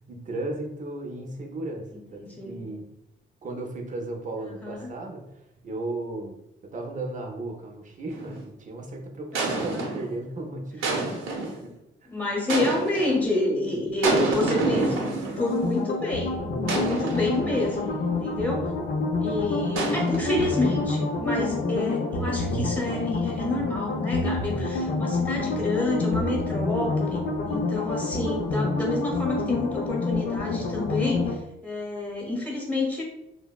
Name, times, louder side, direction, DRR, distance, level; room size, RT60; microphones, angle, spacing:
voice 1, 0.0-2.9 3.4-11.1 11.5-11.7 12.0-12.1, right 2 dB, 40° right, 2 dB, 0.6 m, -35 dB
voice 2, 2.2-2.6 4.4-4.9 9.3-9.9 12.1-18.7 19.2-33.0, left 2 dB, 10° left, -2 dB, 0.9 m, -29 dB
sound 1, 8.1-8.4 9.3-10.1 10.8-11.6 12.5-13.2 14.0-15.7 16.7-17.9 19.8-21.0, right 3 dB, 85° right, 0.7 m, -29 dB
sound 2, 15.4-31.3, left 3 dB, 60° left, 0.5 m, -28 dB
3.3 x 2.0 x 2.2 m, 0.86 s
cardioid pair, 90°, 20 cm